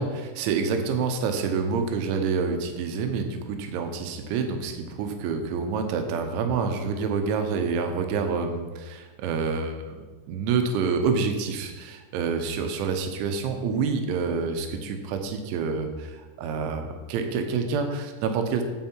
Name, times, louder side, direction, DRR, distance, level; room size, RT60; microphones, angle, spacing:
voice 1, 0.0-10.0 10.3-18.6, right 5 dB, 80° right, 6 dB, 3.2 m, -27 dB
9.2 x 7.5 x 4.5 m, 1.3 s
omnidirectional pair, 5.7 m